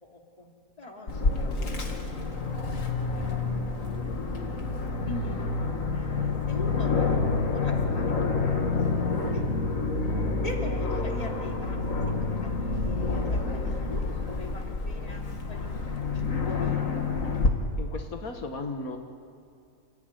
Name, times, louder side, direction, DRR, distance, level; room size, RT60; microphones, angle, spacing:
voice 1, 0.0-0.5 0.8-1.1 1.6-2.6 3.0-3.7 4.0-4.4 4.8-5.3 5.9-8.2 10.4-11.8 12.1-15.7 16.1-16.9, left 1 dB, 25° left, 0 dB, 2.8 m, -42 dB
Aircraft, 1.1-17.5, left 3 dB, 65° left, 2.3 m, -28 dB
voice 2, 17.8-19.0, left 3 dB, 80° left, 4 dB, 2.1 m, -36 dB
30.0 x 15.5 x 9.5 m, 2.3 s
omnidirectional pair, 1.5 m